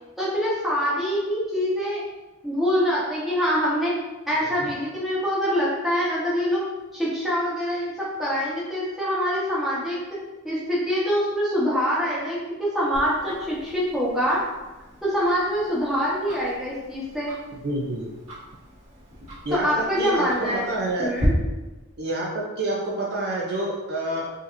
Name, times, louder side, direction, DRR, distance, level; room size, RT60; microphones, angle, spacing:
voice 1, 0.2-2.0 2.4-3.9 4.3-6.6 6.9-10.0 10.4-14.4 15.0-17.3 19.6-20.6 21.0-21.3, equal, ahead, -8 dB, 1.1 m, -25 dB
Tick-tock, 12.9-21.3, equal, 80° right, 1.4 m, -41 dB
voice 2, 17.6-18.1 19.4-21.1 22.0-24.3, right 2 dB, 45° right, -3 dB, 0.5 m, -28 dB
5.0 x 2.8 x 2.6 m, 1.1 s
head